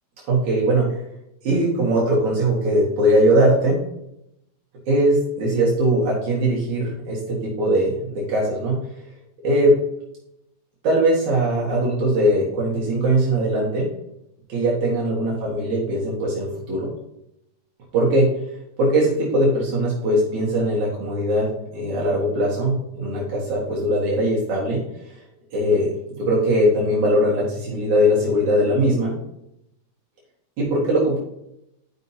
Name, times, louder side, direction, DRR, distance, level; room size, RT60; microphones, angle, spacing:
voice 1, 0.3-1.0 1.4-3.8 4.9-8.8 9.4-9.7 10.8-13.9 14.5-16.9 17.9-18.3 18.8-21.5 21.7-24.8 25.5-29.1 30.6-31.2, right 1 dB, 75° right, -4 dB, 3.1 m, -20 dB
11.5 x 5.4 x 2.8 m, 0.80 s
omnidirectional pair, 3.4 m